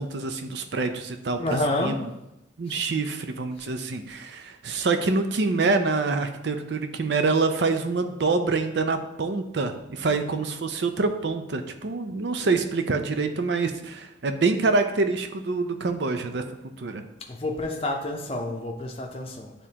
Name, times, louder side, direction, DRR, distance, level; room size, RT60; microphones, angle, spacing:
voice 1, 0.0-1.4 1.8-2.0 2.6-16.5 16.8-17.0, right 3 dB, 65° right, 7 dB, 0.6 m, -26 dB
voice 2, 1.4-2.0 2.7-2.9 3.6-3.7 17.3-19.5, left 2 dB, 30° left, 1 dB, 0.6 m, -29 dB
9.1 x 3.6 x 2.8 m, 0.91 s
head